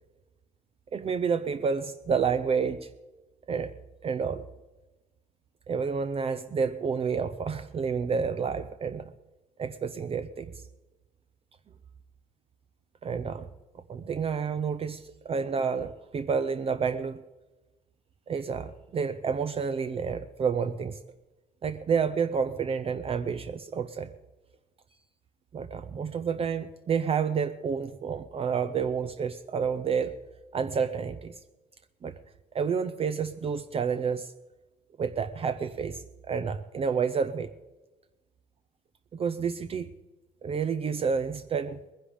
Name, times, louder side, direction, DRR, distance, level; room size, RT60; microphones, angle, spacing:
voice 1, 0.9-2.9 3.5-3.7 4.0-4.4 5.7-9.1 9.6-10.5 13.0-13.5 13.9-17.2 18.3-21.0 21.6-24.1 25.5-30.2 30.5-31.3 32.0-32.1 32.5-34.3 35.0-37.5 39.1-39.9 40.4-41.8, right 6 dB, 35° right, 10 dB, 0.6 m, -29 dB
20.5 x 10.5 x 5.1 m, 1.1 s
cardioid pair, 110°, 17 cm